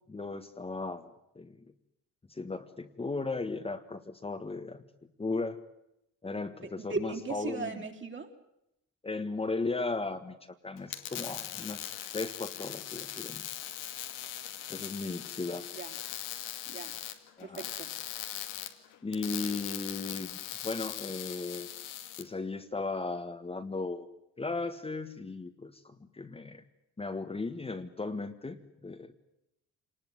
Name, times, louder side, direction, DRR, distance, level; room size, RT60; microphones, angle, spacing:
voice 1, 0.1-1.1 1.3-1.5 2.3-4.8 5.2-5.6 6.2-7.8 9.0-10.4 10.6-13.6 14.7-15.6 17.4-17.6 19.0-21.7 22.2-24.1 24.4-26.6 27.0-29.1, left 3 dB, 20° left, 6 dB, 1.6 m, -36 dB
voice 2, 6.6-8.3 15.7-16.0 16.7-17.0 17.4-17.9, right 4 dB, 40° right, 2 dB, 3.8 m, -38 dB
sound 1, 10.8-22.2, left 12 dB, 90° left, 2.4 m, -40 dB
27.0 x 20.0 x 9.7 m, 0.84 s
cardioid pair, 105°, 31 cm